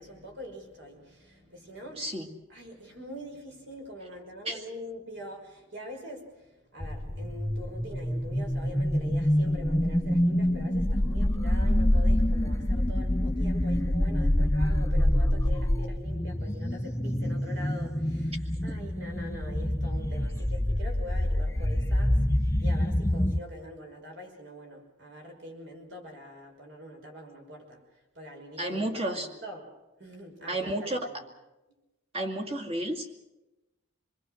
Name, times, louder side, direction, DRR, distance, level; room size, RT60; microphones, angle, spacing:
voice 1, 0.0-2.2 2.5-29.7 30.0-31.2, equal, 60° right, 2 dB, 5.7 m, -44 dB
voice 2, 2.0-2.3 4.5-4.6 28.6-29.3 30.5-31.2 32.1-33.2, right 1 dB, 30° right, 1 dB, 2.3 m, -32 dB
sound 1, 6.8-23.4, left 1 dB, 15° left, 0.7 m, -26 dB
27.0 x 21.0 x 6.5 m, 1.0 s
head